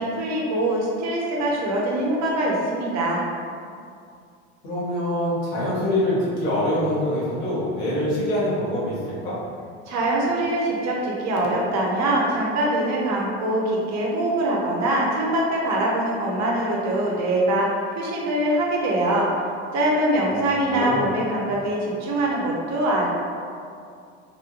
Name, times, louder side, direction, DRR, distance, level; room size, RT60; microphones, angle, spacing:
voice 1, 0.0-3.2 9.9-19.3 19.7-23.1, right 1 dB, 50° right, -3 dB, 0.8 m, -23 dB
voice 2, 4.6-9.4 20.6-21.0, left 1 dB, 70° left, -8 dB, 1.4 m, -24 dB
3.4 x 2.6 x 2.5 m, 2.3 s
hypercardioid pair, 85°, 35 cm